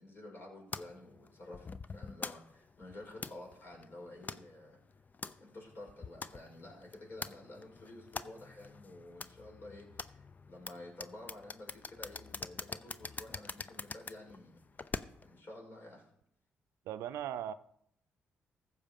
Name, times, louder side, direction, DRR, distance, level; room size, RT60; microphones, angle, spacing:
voice 1, 0.0-4.8 5.4-14.6 15.2-16.1, left 1 dB, 55° left, 5.6 m, -51 dB
sound 1, 0.7-15.4, left 4 dB, 35° left, 0.7 m, -46 dB
voice 2, 16.9-17.5, right 10 dB, 85° right, 0.6 m, -38 dB
15.0 x 6.9 x 5.3 m
supercardioid pair, 55°, 5 cm